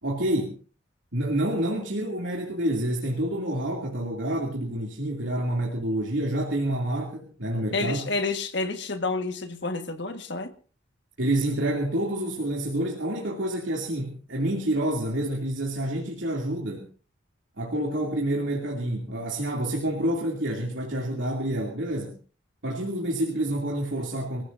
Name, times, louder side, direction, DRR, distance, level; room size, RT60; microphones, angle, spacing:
voice 1, 0.0-0.6 1.1-8.1 11.2-16.9 17.6-22.2 22.6-24.4, right 1 dB, 75° right, 2.7 m, -28 dB
voice 2, 7.7-10.5, left 3 dB, 60° left, 1.6 m, -29 dB
25.5 x 15.5 x 2.7 m
head